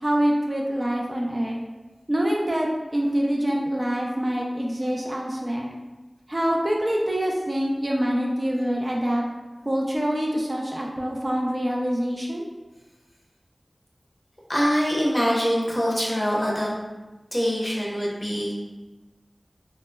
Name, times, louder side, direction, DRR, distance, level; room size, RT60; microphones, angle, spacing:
voice 1, 0.0-1.6 2.1-5.7 6.3-9.2 9.7-12.5, equal, 40° right, -1 dB, 0.4 m, -25 dB
voice 2, 14.5-16.7 17.3-18.5, equal, 25° left, -5 dB, 0.8 m, -24 dB
3.8 x 2.0 x 2.2 m, 1.1 s
wide cardioid pair, 40°, 0 cm